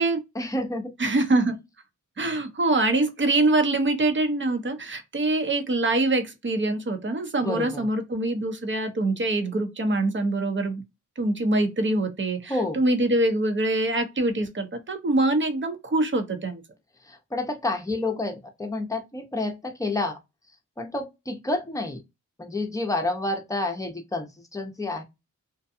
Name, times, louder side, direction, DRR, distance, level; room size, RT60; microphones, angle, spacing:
voice 1, 0.3-0.9 7.4-7.9 12.5-12.8 17.0-20.2 20.8-22.0 22.4-25.0, left 2 dB, 10° left, 0.7 m, -29 dB
voice 2, 1.0-1.6 2.2-10.8 11.2-16.6, right 2 dB, 35° right, 0.8 m, -24 dB
2.6 x 2.2 x 2.6 m
cardioid pair, 55°, 32 cm